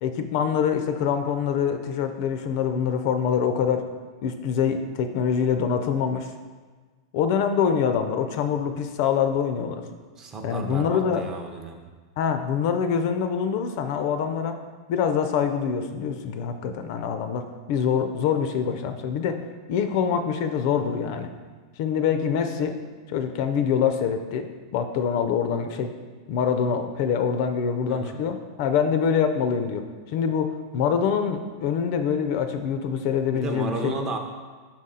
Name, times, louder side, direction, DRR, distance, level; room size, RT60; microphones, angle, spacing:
voice 1, 0.0-3.9 4.2-6.3 7.1-9.8 10.4-11.3 12.2-14.6 14.9-19.4 19.7-21.3 21.8-22.8 23.1-24.5 24.7-25.9 26.3-33.9, left 7 dB, 45° left, 8 dB, 0.4 m, -25 dB
voice 2, 10.2-11.8 27.9-28.2 33.3-34.2, right 3 dB, 20° right, 3 dB, 0.5 m, -33 dB
6.0 x 4.1 x 3.8 m, 1.4 s
supercardioid pair, 160°, 2 cm